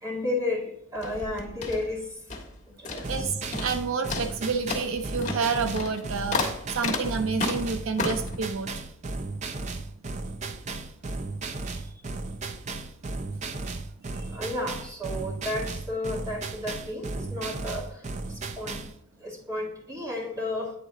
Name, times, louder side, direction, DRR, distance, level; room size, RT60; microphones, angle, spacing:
voice 1, 0.0-2.1 2.8-3.3 14.1-18.0 18.3-18.8 19.2-20.7, left 2 dB, 15° right, -3 dB, 2.0 m, -32 dB
sound 1, 0.9-2.6 2.8-3.2 3.5-3.8 4.1-8.4, left 3 dB, 35° left, 1.3 m, -32 dB
sound 2, 3.0-19.0, right 3 dB, 35° right, 0.5 m, -35 dB
voice 2, 3.1-8.7, right 4 dB, 75° right, 7 dB, 0.6 m, -29 dB
9.5 x 4.0 x 3.6 m, 0.76 s
head